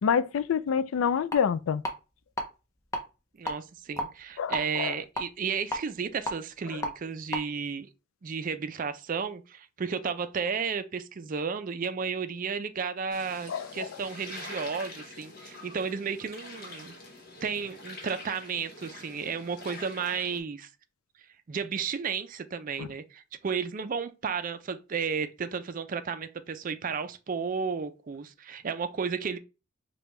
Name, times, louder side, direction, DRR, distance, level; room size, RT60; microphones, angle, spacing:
voice 1, 0.0-1.8 4.4-5.0 13.5-13.9 22.8-22.9, left 7 dB, 85° left, 0.4 m, -27 dB
sound 1, 1.3-1.4 1.8-2.4 2.8-3.0 3.4-4.6 5.1-6.9 7.3-7.4, equal, 15° left, 0.6 m, -32 dB
voice 2, 3.4-7.9 8.2-16.9 17.4-20.7 21.5-29.4, right 6 dB, 40° right, 0.4 m, -33 dB
sound 2, 13.1-20.4, left 2 dB, 45° left, 1.1 m, -45 dB
5.0 x 2.3 x 3.1 m
head